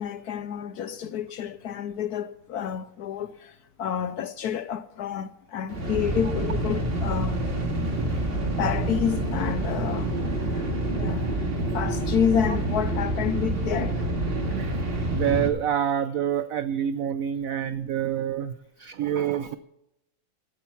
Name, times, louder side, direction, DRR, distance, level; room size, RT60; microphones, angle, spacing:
voice 1, 0.0-7.4 8.6-10.7 10.9-11.2 11.7-14.0, left 8 dB, 70° left, 1.0 m, -29 dB
sound 1, 5.7-15.5, right 1 dB, 30° right, 2.3 m, -27 dB
voice 2, 15.1-19.6, right 9 dB, 80° right, 0.7 m, -27 dB
15.0 x 8.8 x 5.7 m
omnidirectional pair, 2.1 m